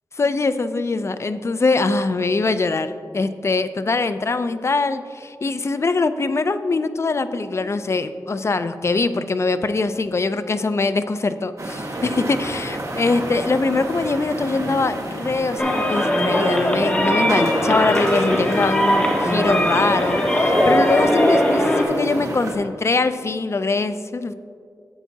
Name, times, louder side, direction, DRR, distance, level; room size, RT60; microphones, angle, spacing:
voice 1, 0.2-24.3, left 3 dB, 40° left, 12 dB, 0.4 m, -22 dB
sound 1, 11.6-22.6, right 1 dB, 50° right, 1.4 m, -30 dB
sound 2, 15.6-21.8, equal, 20° left, 1.4 m, -19 dB
11.5 x 8.1 x 2.8 m, 2.3 s
wide cardioid pair, 75°, 7 cm